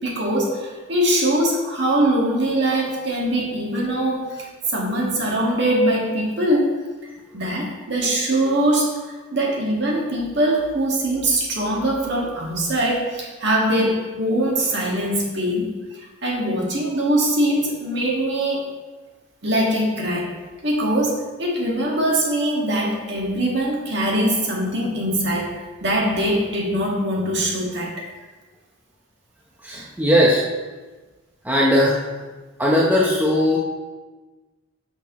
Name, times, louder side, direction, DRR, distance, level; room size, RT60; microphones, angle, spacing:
voice 1, 0.0-6.7 7.3-18.6 19.4-20.3 20.6-28.1, right 1 dB, 55° right, -3 dB, 1.9 m, -22 dB
voice 2, 29.6-30.4 31.4-32.1 32.6-33.6, equal, 10° right, -4 dB, 0.8 m, -18 dB
10.5 x 6.1 x 3.1 m, 1.3 s
head